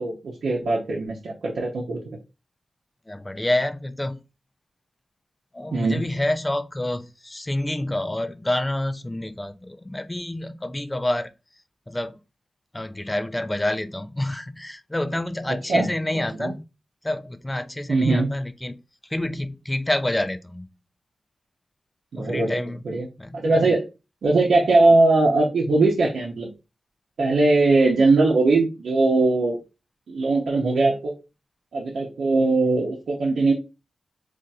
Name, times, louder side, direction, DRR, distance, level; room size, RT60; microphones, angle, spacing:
voice 1, 0.0-2.0 5.7-6.0 15.7-16.6 17.9-18.3 22.1-23.1 23.3-23.8 24.2-26.5 27.2-29.6 30.1-31.1 31.7-33.5, right 3 dB, 85° right, 0.7 m, -20 dB
voice 2, 3.1-4.2 5.5-11.3 11.9-12.2 12.7-16.6 17.0-18.8 19.1-20.7 22.2-22.8 23.2-23.7, left 1 dB, 15° left, 0.3 m, -28 dB
4.0 x 2.5 x 2.3 m
wide cardioid pair, 95°, 0 cm